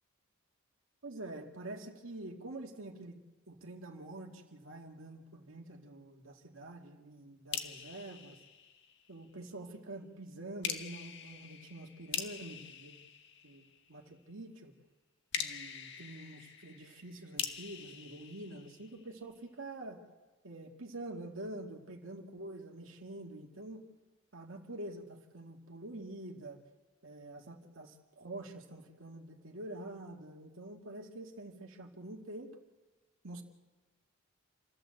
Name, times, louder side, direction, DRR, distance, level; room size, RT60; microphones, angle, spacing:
voice 1, 1.0-3.2 3.5-8.4 9.1-13.0 13.4-14.7 15.4-20.0 20.4-23.9 24.3-26.6 27.0-32.6 33.2-33.4, right 2 dB, 70° right, 1 dB, 2.3 m, -46 dB
sound 1, 7.5-9.2 10.6-14.0 15.3-19.2, left 8 dB, 60° left, 1.5 m, -43 dB
28.5 x 14.0 x 7.9 m, 1.2 s
head